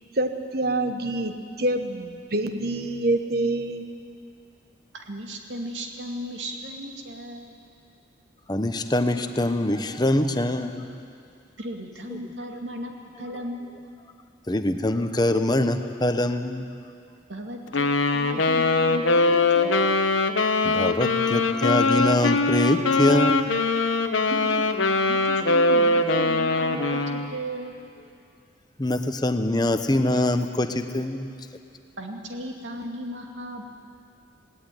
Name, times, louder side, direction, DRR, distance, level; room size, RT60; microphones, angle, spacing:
voice 1, 0.2-3.9, right 2 dB, 55° right, 7 dB, 1.3 m, -26 dB
voice 2, 4.9-7.5 11.6-13.8 17.3-20.0 24.3-24.7 25.1-27.7 32.0-33.6, equal, 75° right, 2 dB, 2.5 m, -35 dB
voice 3, 8.5-10.9 12.1-12.2 14.5-16.7 20.6-23.4 28.8-31.3, left 1 dB, 20° left, 8 dB, 0.9 m, -24 dB
Wind instrument woodwind instrument, 17.7-27.3, left 3 dB, 85° left, 1.1 m, -22 dB
18.0 x 18.0 x 9.9 m, 2.4 s
head